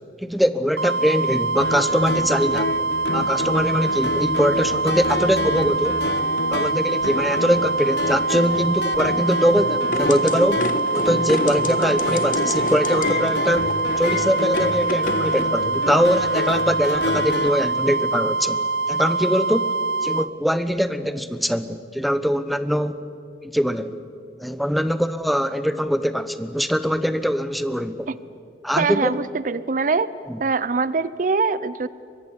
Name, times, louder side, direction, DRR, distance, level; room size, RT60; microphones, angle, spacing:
voice 1, 0.2-2.7 3.1-6.0 6.5-13.7 14.0-18.6 18.9-19.7 20.0-23.0 23.5-23.9 24.4-28.1 28.6-29.1 30.3-30.4, equal, ahead, 12 dB, 1.0 m, -22 dB
sound 1, 0.8-20.3, right 3 dB, 70° right, 1.0 m, -24 dB
sound 2, 1.6-17.5, left 2 dB, 70° left, 1.2 m, -29 dB
sound 3, 9.9-15.4, left 2 dB, 50° left, 1.4 m, -29 dB
voice 2, 28.8-30.1 30.4-31.9, right 4 dB, 50° right, 17 dB, 0.5 m, -23 dB
23.5 x 23.0 x 9.9 m, 2.4 s
head